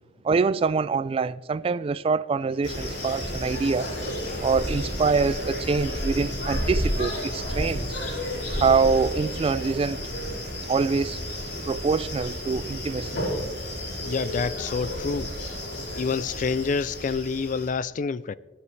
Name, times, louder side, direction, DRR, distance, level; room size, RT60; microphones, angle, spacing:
voice 1, 0.2-3.9 4.4-7.9 8.5-10.0 10.7-11.2 11.7-13.2, right 4 dB, 35° right, 0.3 m, -25 dB
sound 1, 2.6-17.7, equal, 75° left, 4.9 m, -31 dB
voice 2, 14.0-15.3 16.0-18.3, left 5 dB, 45° left, 0.4 m, -28 dB
27.5 x 9.6 x 3.2 m
head